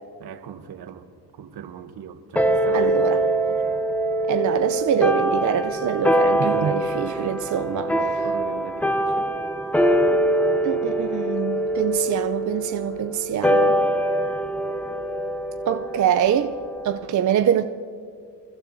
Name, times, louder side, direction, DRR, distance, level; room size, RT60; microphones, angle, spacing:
voice 1, 0.2-1.0 1.3-2.9 3.3-3.8 6.4-7.4 7.7-9.3, right 7 dB, 65° right, 10 dB, 1.0 m, -36 dB
sound 1, 2.4-17.1, right 1 dB, 5° left, 0.6 m, -23 dB
voice 2, 2.7-3.2 4.3-7.9 10.6-13.8 15.7-16.6 16.8-17.6, right 9 dB, 45° right, 7 dB, 0.6 m, -24 dB
28.0 x 12.0 x 2.7 m, 2.2 s
cardioid pair, 85°, 41 cm